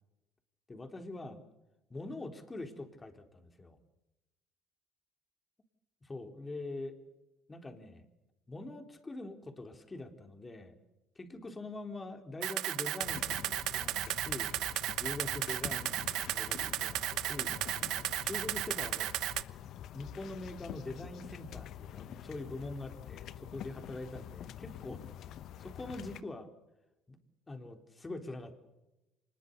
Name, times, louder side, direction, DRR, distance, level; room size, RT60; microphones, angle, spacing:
voice 1, 0.7-1.4 1.9-3.8 6.0-6.9 7.5-8.1 8.5-10.8 11.2-14.5 15.0-17.5 18.2-19.2 19.9-25.1 25.6-26.5 27.1-27.2 27.5-28.5, left 2 dB, 20° left, 6 dB, 3.8 m, -44 dB
Camera, 12.4-19.4, right 15 dB, 70° right, 1.0 m, -34 dB
sound 1, 13.0-26.2, left 10 dB, 65° left, 1.0 m, -46 dB
25.5 x 21.0 x 6.8 m, 0.98 s
supercardioid pair, 85°, 0 cm